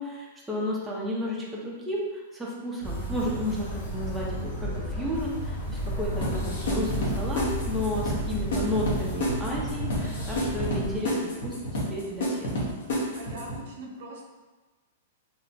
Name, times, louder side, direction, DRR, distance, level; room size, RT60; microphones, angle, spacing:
voice 1, 0.0-11.2 11.4-11.5 11.9-12.6, left 1 dB, 5° right, -5 dB, 0.5 m, -32 dB
sound 1, 2.8-9.2, equal, 85° left, 1.5 m, -45 dB
sound 2, 2.8-11.0, equal, 45° left, 0.9 m, -33 dB
sound 3, 6.2-13.6, equal, 70° left, 0.9 m, -30 dB
voice 2, 13.2-14.2, right 1 dB, 65° right, 0 dB, 0.5 m, -41 dB
2.8 x 2.0 x 2.6 m, 1.2 s
hypercardioid pair, 135°, 0 cm